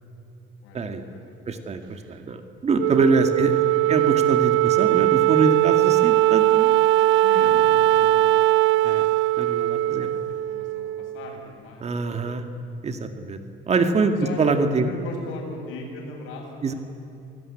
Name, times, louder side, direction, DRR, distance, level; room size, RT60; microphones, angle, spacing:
voice 1, 0.6-1.7 3.3-3.9 7.2-9.0 9.8-12.6 14.1-14.5 14.8-16.8, left 2 dB, 85° left, 0 dB, 7.6 m, -40 dB
voice 2, 1.5-6.7 8.8-9.1 9.4-10.1 11.8-12.4 12.8-13.4 13.7-14.9 16.6-16.7, right 4 dB, 35° right, 7 dB, 2.1 m, -24 dB
Wind instrument woodwind instrument, 2.8-11.4, right 15 dB, 75° right, 0.6 m, -20 dB
29.0 x 18.5 x 10.0 m, 2.7 s
cardioid pair, 140°, 20 cm